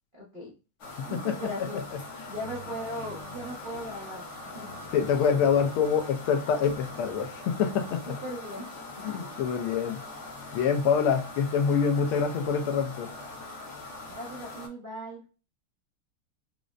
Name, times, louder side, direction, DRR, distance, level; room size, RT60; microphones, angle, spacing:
voice 1, 0.1-0.5 1.1-1.9 2.2-4.2 4.5-4.7 8.1-8.7 9.0-9.3 14.2-15.2, equal, 55° right, -5 dB, 0.5 m, -38 dB
sound 1, 0.8-14.7, left 2 dB, 60° left, 0.8 m, -42 dB
voice 2, 4.9-8.1 9.0-10.0 10.5-13.1, left 6 dB, 85° left, 5 dB, 1.5 m, -26 dB
5.0 x 2.1 x 2.4 m, 0.33 s
omnidirectional pair, 2.4 m